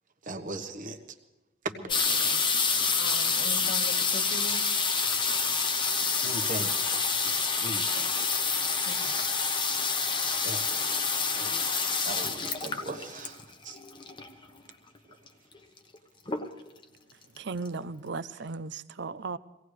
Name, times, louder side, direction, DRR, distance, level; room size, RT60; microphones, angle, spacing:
voice 1, 0.3-1.0 6.2-8.1 8.6-8.7 10.4-10.9 11.3-11.7 12.0-13.4 13.6-13.8, right 2 dB, 40° right, 1.2 m, -39 dB
voice 2, 1.7-2.5 3.0-4.6 8.8-9.1, left 2 dB, 65° left, 1.4 m, -41 dB
sound 1, 1.9-14.4 15.3-15.4 15.5-15.9 16.3-16.8 17.4-17.5 17.7-17.8, left 4 dB, 25° left, 1.0 m, -28 dB
voice 3, 17.4-19.4, right 4 dB, 60° right, 0.6 m, -36 dB
24.0 x 17.5 x 3.3 m
head